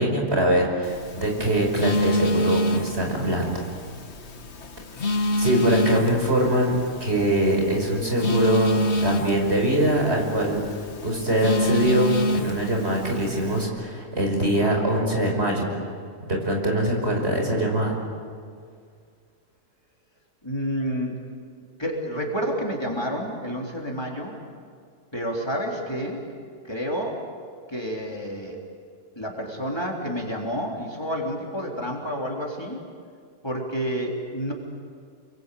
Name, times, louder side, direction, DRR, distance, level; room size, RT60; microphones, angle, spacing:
voice 1, 0.0-3.5 5.4-15.7 16.3-18.0, right 1 dB, 60° right, 1 dB, 5.7 m, -23 dB
Telephone, 0.8-13.6, equal, 65° left, 1.8 m, -28 dB
voice 2, 20.4-21.1 21.8-24.4 25.1-26.3 26.6-27.3 27.7-28.6 29.2-32.8 33.4-34.5, equal, 20° left, -1 dB, 3.8 m, -29 dB
29.5 x 23.0 x 8.5 m, 2.1 s
omnidirectional pair, 1.3 m